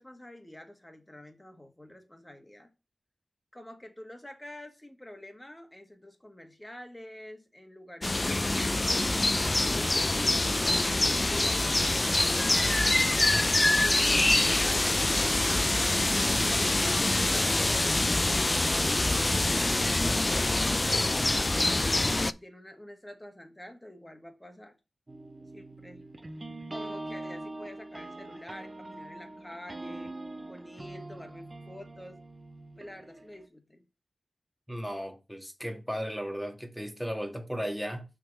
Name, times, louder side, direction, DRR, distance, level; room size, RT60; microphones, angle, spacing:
voice 1, 0.0-2.7 3.5-9.8 10.2-13.4 14.0-20.6 22.2-24.7 25.4-26.0 26.7-30.2 30.5-32.2 32.8-33.8, left 1 dB, 15° left, 1.7 m, -48 dB
sound 1, 8.0-22.3, left 2 dB, 35° left, 0.4 m, -25 dB
sound 2, 25.1-33.5, right 2 dB, 40° right, 0.7 m, -43 dB
voice 2, 34.7-38.0, equal, ahead, 1.7 m, -35 dB
6.0 x 3.8 x 6.0 m
cardioid pair, 45°, 0 cm